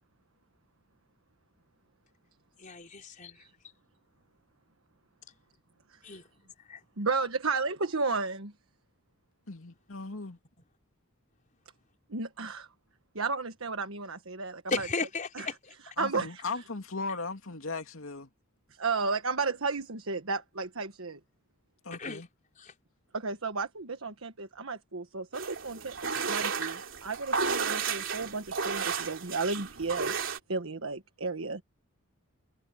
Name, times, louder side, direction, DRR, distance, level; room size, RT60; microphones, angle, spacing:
voice 1, 2.6-3.4 6.0-6.2 6.7-6.8 14.7-15.7 22.0-22.2 22.6-22.7, left 3 dB, 40° left, 4.5 m, -35 dB
voice 2, 7.0-8.5 12.1-12.7 13.1-14.9 15.3-15.5 16.0-16.3 18.8-21.2 23.1-25.9 26.3-30.1 30.5-31.6, right 4 dB, 80° right, 1.4 m, -33 dB
voice 3, 9.5-10.4 16.0-18.3 21.8-22.3, left 3 dB, 80° left, 2.5 m, -37 dB
sound 1, 25.3-30.4, right 5 dB, 65° right, 3.4 m, -33 dB
head